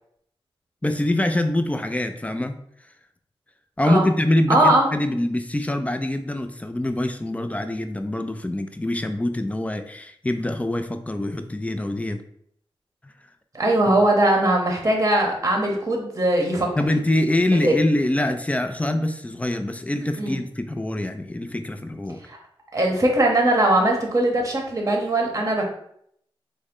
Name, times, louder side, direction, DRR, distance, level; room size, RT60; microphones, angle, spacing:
voice 1, 0.8-2.5 3.8-12.2 16.8-22.2, left 1 dB, 15° left, 8 dB, 0.3 m, -24 dB
voice 2, 4.5-4.9 13.5-16.7 17.5-17.7 20.2-20.4 22.2-22.4 22.7-25.7, right 1 dB, 30° right, 1 dB, 0.8 m, -20 dB
3.5 x 2.1 x 3.5 m, 0.69 s
cardioid pair, 60°, 10 cm